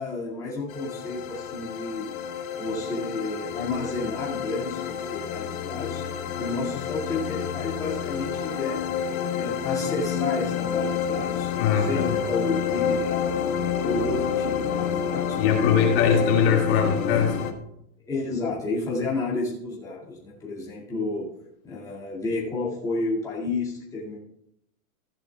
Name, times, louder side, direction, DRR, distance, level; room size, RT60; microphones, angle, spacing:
voice 1, 0.0-2.1 2.6-6.0 6.4-8.8 9.3-11.5 11.8-13.4 13.8-16.1 18.0-21.3 21.6-24.2, left 3 dB, 10° left, -7 dB, 2.2 m, -31 dB
sound 1, 0.7-17.5, left 7 dB, 65° left, 1.5 m, -29 dB
voice 2, 11.6-12.1 15.4-17.4, left 7 dB, 40° left, 0 dB, 2.3 m, -21 dB
15.5 x 10.5 x 2.3 m, 0.77 s
supercardioid pair, 165°, 45 cm